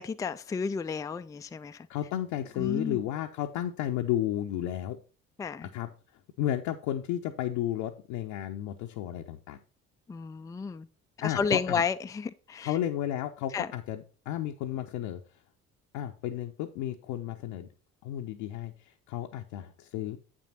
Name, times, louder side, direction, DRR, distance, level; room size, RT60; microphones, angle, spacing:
voice 1, 0.0-1.9 2.6-3.0 5.4-5.7 10.1-10.9 11.2-12.7 13.5-13.7, left 5 dB, 10° left, 0.4 m, -32 dB
voice 2, 1.9-5.0 5.6-5.9 6.4-9.6 11.2-11.8 12.6-15.2 15.9-17.7 18.0-20.2, left 12 dB, 60° left, 0.7 m, -33 dB
8.3 x 6.2 x 4.0 m
figure-of-eight pair, 45°, 40 cm